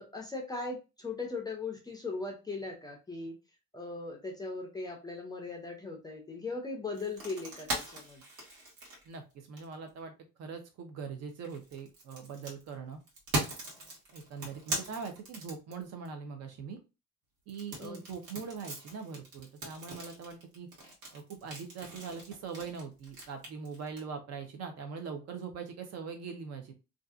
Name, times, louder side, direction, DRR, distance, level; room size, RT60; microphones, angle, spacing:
voice 1, 0.0-3.3 3.7-8.2 17.8-18.0, left 3 dB, 15° left, 0 dB, 0.4 m, -39 dB
sound 1, 6.9-9.9 11.3-16.1 17.5-24.0, right 1 dB, 80° right, 1.3 m, -39 dB
voice 2, 9.1-10.1 10.4-13.0 14.1-16.8 17.5-20.7 21.1-26.7, right 5 dB, 55° right, 6 dB, 0.6 m, -42 dB
2.6 x 2.4 x 2.3 m, 0.28 s
cardioid pair, 165°, 31 cm